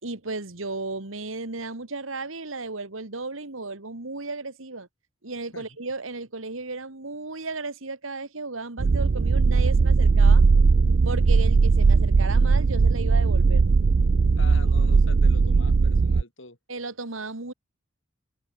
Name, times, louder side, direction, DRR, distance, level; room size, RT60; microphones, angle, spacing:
voice 1, 0.0-4.9 5.2-10.4 11.0-13.7 16.7-17.5, right 3 dB, 90° right, 2.3 m, -34 dB
sound 1, 8.8-16.2, right 4 dB, 65° right, 0.5 m, -19 dB
voice 2, 14.4-16.6, left 2 dB, 75° left, 6.6 m, -43 dB
open air
head